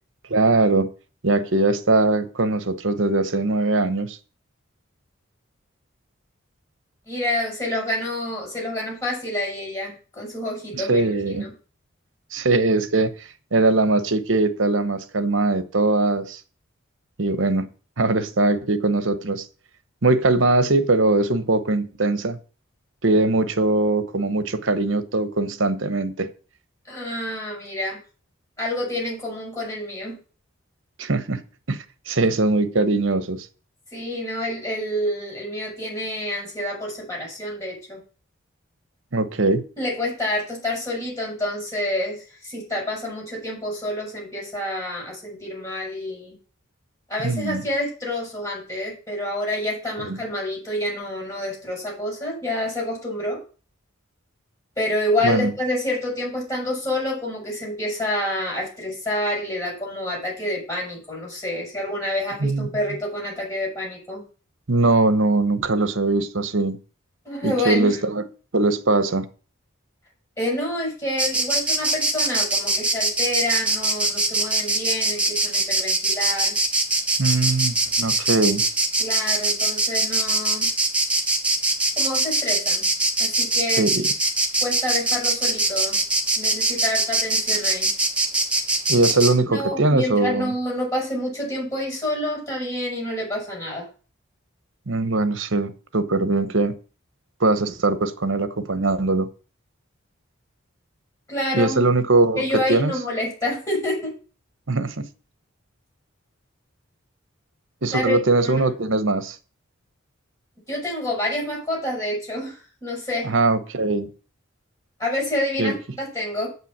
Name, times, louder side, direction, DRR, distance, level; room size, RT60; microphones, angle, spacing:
voice 1, 0.3-0.9 1.2-4.2 10.7-11.5 12.3-13.2 13.5-16.4 17.2-17.7 18.0-19.4 20.0-22.4 23.0-26.3 31.0-31.4 31.7-31.8 32.1-33.5 39.1-39.6 47.2-47.6 50.0-50.2 55.2-55.5 62.4-62.7 64.7-66.8 67.4-68.2 68.5-69.3 77.2-78.6 83.8-84.1 88.9-90.5 94.9-96.7 97.4-99.3 101.5-102.9 104.7-105.1 107.8-109.4 113.2-114.1 115.6-115.7, right 2 dB, 65° right, 1.0 m, -21 dB
voice 2, 7.1-11.5 26.9-28.0 28.6-30.2 33.9-38.0 39.8-46.3 47.1-53.4 54.8-64.2 67.3-68.0 70.4-76.6 79.0-80.7 82.0-82.9 83.2-83.8 84.6-86.0 86.4-87.9 89.5-93.9 101.3-101.8 102.4-104.1 107.9-108.2 108.4-108.6 110.7-113.3 115.0-116.5, left 1 dB, 15° left, 5.6 m, -28 dB
Insect, 71.2-89.3, right 2 dB, 5° right, 1.2 m, -22 dB
7.9 x 5.8 x 7.2 m
head